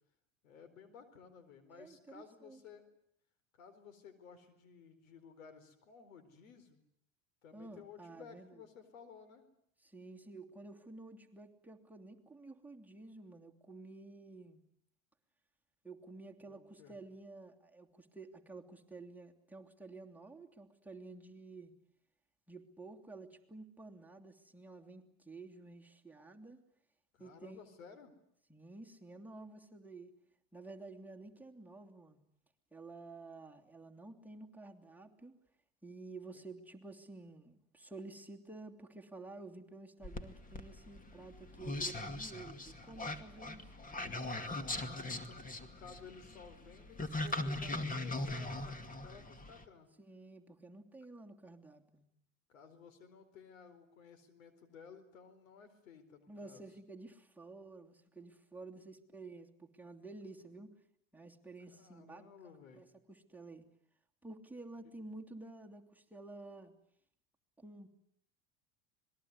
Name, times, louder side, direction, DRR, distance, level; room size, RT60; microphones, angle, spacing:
voice 1, 0.4-2.9 3.5-6.8 7.4-9.4 16.4-17.0 27.1-28.1 36.3-36.4 44.6-49.9 52.5-56.6 61.7-62.8 64.8-64.9, left 6 dB, 85° left, 10 dB, 4.4 m, -56 dB
voice 2, 1.7-2.6 7.5-8.6 9.8-14.6 15.8-21.7 22.5-26.6 27.2-27.7 28.5-30.1 30.5-32.2 32.7-35.4 35.8-44.0 50.0-52.1 56.3-60.7 61.1-62.2 62.7-63.6 64.2-66.7 67.6-67.9, right 3 dB, 5° right, 0 dB, 2.9 m, -51 dB
sound 1, 40.0-49.6, left 2 dB, 20° left, 2.4 m, -40 dB
26.0 x 21.0 x 9.7 m, 0.74 s
hypercardioid pair, 95°, 39 cm